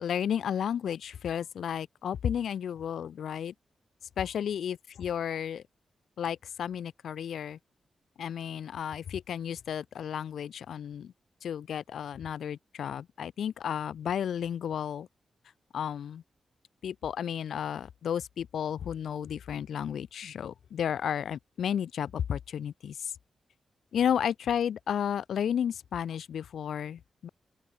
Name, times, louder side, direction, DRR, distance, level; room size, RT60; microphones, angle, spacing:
voice 1, 0.0-3.5 4.2-5.6 6.2-7.6 8.2-11.1 11.4-15.1 15.7-16.2 16.8-23.1 23.9-27.3, left 8 dB, 90° left, 0.8 m, -32 dB
open air
wide cardioid pair, 130°, 0 cm